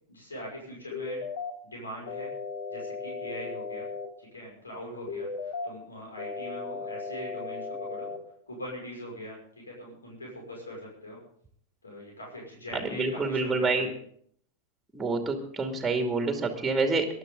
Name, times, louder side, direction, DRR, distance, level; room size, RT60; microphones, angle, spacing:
voice 1, 0.1-1.2 1.7-2.3 2.7-3.9 4.2-8.1 8.5-9.4 9.7-11.2 11.8-13.9, equal, 75° left, -2 dB, 5.9 m, -41 dB
sound 1, 0.9-1.5 2.1-4.1 5.1-5.7 6.2-8.2, left 4 dB, 55° left, 3.0 m, -36 dB
voice 2, 12.8-13.9 14.9-17.1, right 3 dB, 10° right, 5 dB, 2.4 m, -27 dB
23.0 x 11.5 x 3.9 m, 0.63 s
figure-of-eight pair, 90°, 0 cm